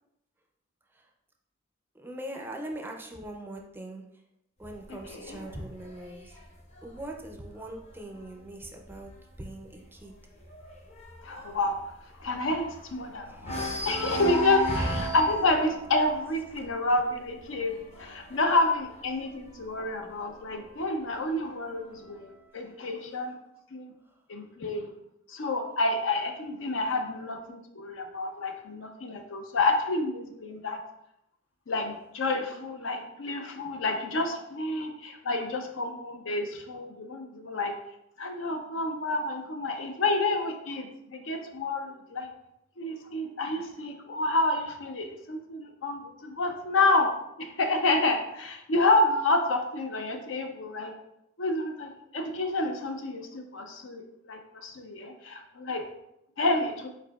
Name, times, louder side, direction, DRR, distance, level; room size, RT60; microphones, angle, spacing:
voice 1, 1.9-4.0 4.6-6.4 6.8-9.1 9.4-10.1 13.2-13.8 14.7-15.1 22.6-22.9, right 1 dB, 10° right, 2 dB, 0.4 m, -39 dB
sound 1, 4.6-8.3 8.7-9.0 9.3-9.4 9.8-13.0 13.4-19.9 20.8-21.8, equal, 35° left, 0.8 m, -37 dB
voice 2, 5.1-5.4 11.2-11.8 12.2-17.7 18.0-23.4 23.7-23.9 24.3-24.9 25.3-30.8 31.7-37.7 38.2-42.3 42.8-47.1 47.4-50.9 51.4-55.8 56.4-56.9, left 2 dB, 70° left, 5 dB, 0.6 m, -29 dB
4.8 x 4.3 x 2.3 m, 0.81 s
head